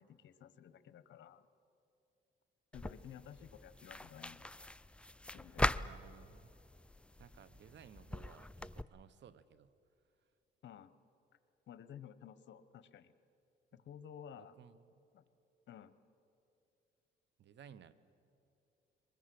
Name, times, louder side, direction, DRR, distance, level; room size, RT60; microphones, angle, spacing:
voice 1, 0.0-1.5 2.7-4.5 5.3-5.7 10.6-10.9 11.7-13.1 13.7-14.6 15.1-15.2 15.7-16.0, left 9 dB, 65° left, 14 dB, 1.1 m, -54 dB
sound 1, 2.7-8.8, left 1 dB, 5° left, 0.4 m, -41 dB
voice 2, 5.8-6.5 7.2-9.7 14.4-15.0 17.4-17.9, right 8 dB, 65° right, 15 dB, 1.1 m, -58 dB
23.5 x 21.0 x 7.8 m, 2.7 s
cardioid pair, 90°, 20 cm